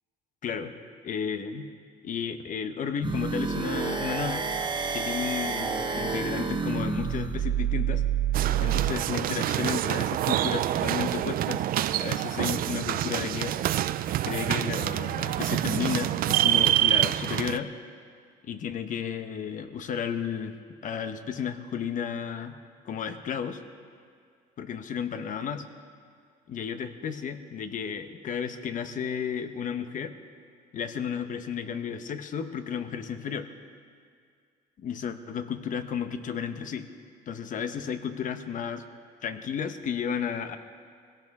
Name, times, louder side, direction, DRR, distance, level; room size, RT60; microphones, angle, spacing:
voice 1, 0.4-0.7 1.0-1.7 2.0-4.5 4.9-8.0 8.6-11.7 12.0-13.8 14.2-17.7 18.4-20.5 20.8-22.6 22.8-23.6 24.6-25.6 26.5-30.1 30.7-33.5 34.8-36.9 37.3-38.8 39.2-40.6, left 7 dB, 50° left, 9 dB, 1.0 m, -33 dB
sound 1, 3.0-8.9, right 7 dB, 25° right, 1.2 m, -28 dB
sound 2, 8.3-17.6, right 13 dB, 60° right, 0.4 m, -26 dB
20.5 x 16.5 x 3.6 m, 2.1 s
cardioid pair, 110°, 17 cm